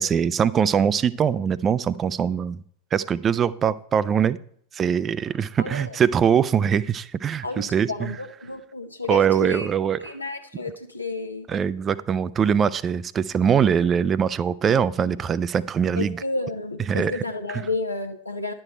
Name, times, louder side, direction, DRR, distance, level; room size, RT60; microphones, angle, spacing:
voice 1, 0.0-2.6 2.9-4.4 4.7-8.1 9.1-10.0 11.5-16.2 16.9-17.2 17.5-17.6, right 7 dB, 25° right, 18 dB, 0.4 m, -22 dB
voice 2, 5.6-6.0 7.4-9.7 10.0-11.5 16.0-18.5, left 3 dB, 85° left, 5 dB, 0.8 m, -31 dB
10.5 x 6.5 x 4.3 m, 0.65 s
figure-of-eight pair, 90°, 0 cm